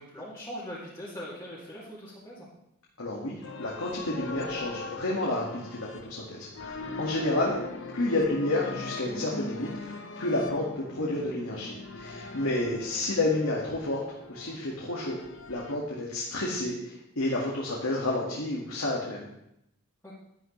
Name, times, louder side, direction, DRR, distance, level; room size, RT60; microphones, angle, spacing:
voice 1, 0.0-2.5 7.2-7.3 20.0-20.2, equal, 10° left, -9 dB, 2.5 m, -41 dB
voice 2, 3.0-7.6 7.9-14.0 14.3-15.2 15.5-19.3, left 2 dB, 80° left, -4 dB, 1.9 m, -30 dB
sound 1, 3.4-15.8, left 3 dB, 55° left, 0.9 m, -40 dB
11.5 x 11.0 x 3.3 m, 0.80 s
head